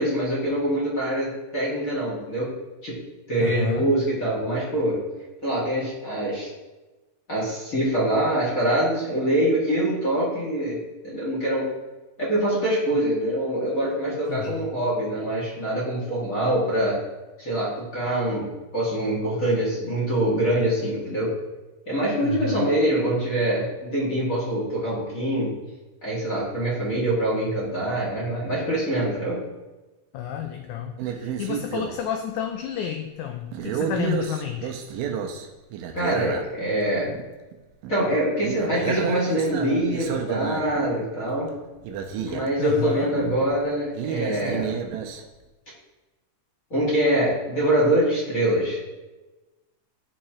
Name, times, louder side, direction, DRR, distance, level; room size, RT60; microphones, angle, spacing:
voice 1, 0.0-2.5 2.8-2.9 3.3-5.0 5.4-6.5 7.3-10.8 11.0-11.7 12.2-17.0 17.4-21.3 21.9-25.5 26.0-29.4 35.9-37.1 37.9-41.5 42.2-44.8 46.7-48.8, right 1 dB, 35° left, -6 dB, 1.5 m, -24 dB
voice 2, 3.4-3.9 14.3-14.7 22.2-22.7 30.1-34.7 41.9-42.0 42.6-43.1, left 8 dB, 85° left, 5 dB, 1.7 m, -30 dB
sound 1, 31.0-32.0 32.5-32.7 33.5-36.8 37.1-37.2 37.5-37.6 37.8-38.2 38.4-41.0 41.6-41.7 41.8-42.6 43.1-45.2, right 7 dB, 85° right, 2.3 m, -31 dB
11.5 x 4.3 x 2.9 m, 1.1 s
omnidirectional pair, 4.0 m